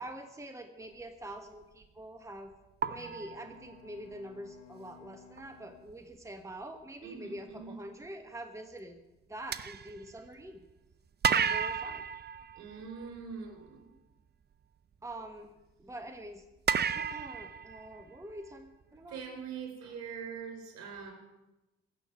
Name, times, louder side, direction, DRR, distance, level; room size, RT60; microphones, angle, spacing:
voice 1, 0.0-2.5 2.9-9.0 9.3-10.6 11.3-12.0 15.0-15.5 15.8-16.4 16.9-19.2, right 1 dB, 10° right, 7 dB, 1.4 m, -45 dB
sound 1, 1.6-1.8 2.8-4.1 5.4-5.5 5.9-6.1 9.5-10.7 11.2-13.3 16.7-18.5, right 7 dB, 35° right, 0.7 m, -33 dB
Bowed string instrument, 3.1-6.6, left 10 dB, 70° left, 1.3 m, -58 dB
voice 2, 7.0-7.8 12.5-13.8 19.1-21.1, right 6 dB, 60° right, 4 dB, 4.2 m, -43 dB
16.0 x 6.5 x 9.6 m, 1.0 s
hypercardioid pair, 50°, 30 cm